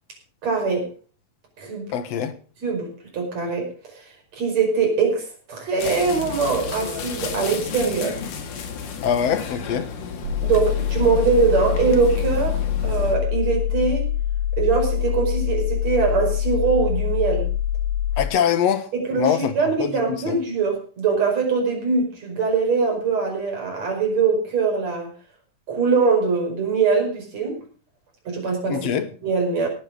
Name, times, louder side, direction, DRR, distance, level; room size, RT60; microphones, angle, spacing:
voice 1, 0.4-0.9 1.6-1.9 2.6-4.0 4.3-8.2 10.4-14.1 14.6-17.5 18.9-25.1 25.7-27.6 28.3-28.8 29.2-29.7, right 5 dB, 50° right, 6.4 m, -22 dB
voice 2, 1.9-2.3 9.0-9.9 18.2-18.9 19.1-19.5 19.8-20.4 28.7-29.1, left 8 dB, 60° left, 2.2 m, -23 dB
sound 1, 5.8-13.2, left 6 dB, 75° left, 3.6 m, -33 dB
sound 2, 10.2-18.2, left 11 dB, 70° right, 6.0 m, -24 dB
18.0 x 9.6 x 5.1 m
omnidirectional pair, 3.8 m